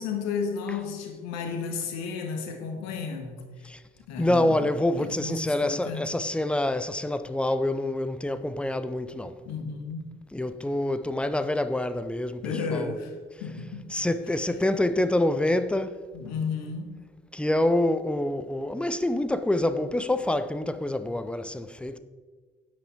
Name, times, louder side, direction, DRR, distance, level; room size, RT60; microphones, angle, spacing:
voice 1, 0.0-3.4 4.1-4.7 5.0-6.2 9.5-10.1 12.4-13.1 13.4-13.9 14.3-14.5 16.1-16.9, left 5 dB, 65° left, 1.6 m, -33 dB
voice 2, 4.2-9.3 10.3-12.4 12.7-12.9 13.9-16.0 17.3-22.0, left 1 dB, 5° left, 0.7 m, -26 dB
10.0 x 8.7 x 4.5 m
figure-of-eight pair, 45°, 29 cm